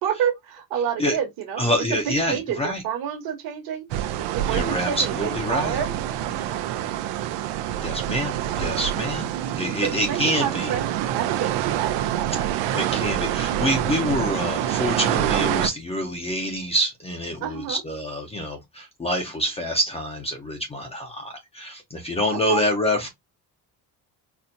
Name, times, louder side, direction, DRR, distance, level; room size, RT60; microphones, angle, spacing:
voice 1, 0.0-1.6 2.1-3.8 4.3-5.9 9.8-12.6 17.4-17.8 22.5-22.6, right 9 dB, 60° right, 1.1 m, -29 dB
voice 2, 1.6-2.8 4.5-5.8 7.8-9.3 9.6-10.7 12.7-23.1, equal, 15° left, 0.4 m, -26 dB
sound 1, 3.9-15.7, right 12 dB, 85° right, 0.6 m, -26 dB
4.2 x 2.1 x 2.6 m
cardioid pair, 175°, 41 cm